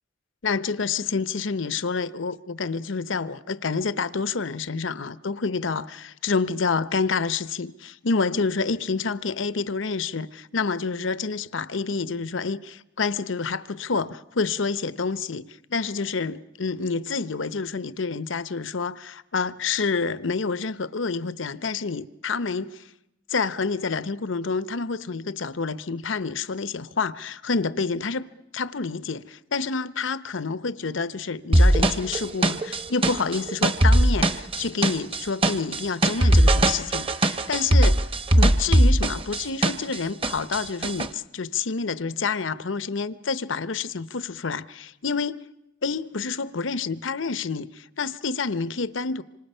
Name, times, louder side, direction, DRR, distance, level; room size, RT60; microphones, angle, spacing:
voice 1, 0.4-22.8 23.3-28.3 28.5-38.0 38.4-45.4 45.8-49.2, left 4 dB, 80° left, 0.8 m, -28 dB
sound 1, 31.5-40.0 40.2-41.1, right 1 dB, 30° right, 0.9 m, -19 dB
26.5 x 26.5 x 5.6 m
head